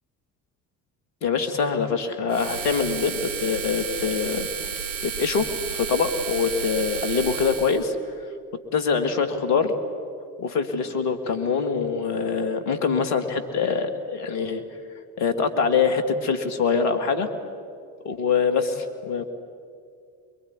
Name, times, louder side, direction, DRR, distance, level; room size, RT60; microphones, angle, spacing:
voice 1, 1.2-4.5 5.0-8.0 8.7-9.7 10.4-14.6 15.2-17.3 18.0-19.2, left 5 dB, 80° left, 7 dB, 2.3 m, -24 dB
sound 1, 2.3-7.8, right 7 dB, 80° right, 2.4 m, -32 dB
23.5 x 23.0 x 9.6 m, 2.3 s
hypercardioid pair, 50°, 47 cm